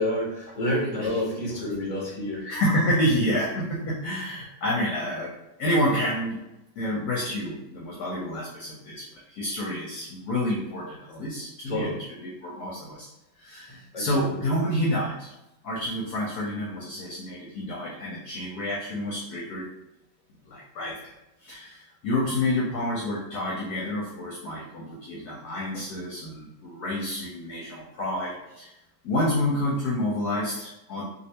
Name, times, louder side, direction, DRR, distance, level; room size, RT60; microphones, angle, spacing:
voice 1, 0.0-2.5 11.7-12.0 13.9-14.5, left 1 dB, 25° left, -4 dB, 0.8 m, -29 dB
voice 2, 2.4-5.3 5.6-6.4 6.8-11.9 12.2-13.1 13.4-15.3 15.6-19.7 20.4-21.1 21.4-28.7 29.0-31.0, left 1 dB, 65° left, -3 dB, 1.1 m, -29 dB
3.2 x 3.1 x 2.8 m, 0.93 s
omnidirectional pair, 2.0 m